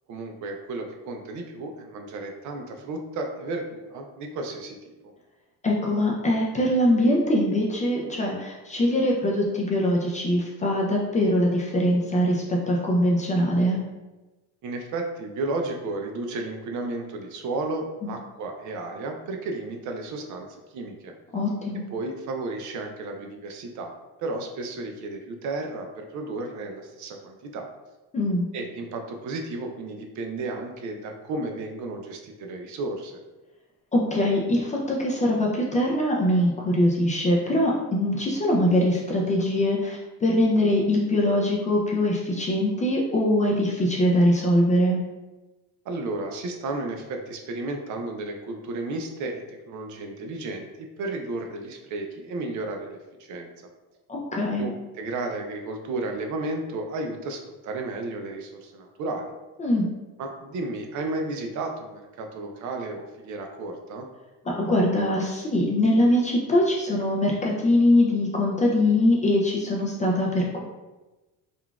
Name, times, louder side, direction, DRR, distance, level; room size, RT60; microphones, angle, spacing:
voice 1, 0.1-4.9 14.6-21.1 21.9-23.9 24.2-27.7 28.5-33.2 45.9-53.5 54.6-59.3 60.2-64.1, right 2 dB, 50° right, 3 dB, 0.5 m, -33 dB
voice 2, 5.6-13.8 18.0-18.1 21.3-21.8 28.1-28.5 33.9-45.0 54.1-54.7 59.6-59.9 64.5-70.6, left 1 dB, 20° left, -2 dB, 0.3 m, -22 dB
3.7 x 2.3 x 2.3 m, 1.1 s
cardioid pair, 125°, 38 cm